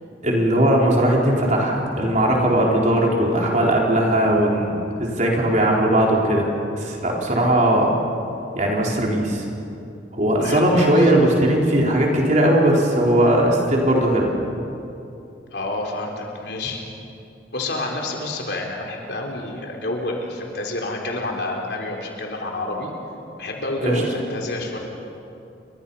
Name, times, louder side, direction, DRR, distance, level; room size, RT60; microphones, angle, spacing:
voice 1, 0.2-4.7 5.0-6.5 6.8-7.9 8.5-9.4 10.1-14.3 23.8-24.0, right 1 dB, 40° right, -2 dB, 4.3 m, -18 dB
voice 2, 10.4-11.1 15.5-16.8 17.5-22.9 23.4-24.8, left 2 dB, 65° left, 1 dB, 4.0 m, -28 dB
29.5 x 24.0 x 5.7 m, 2.7 s
head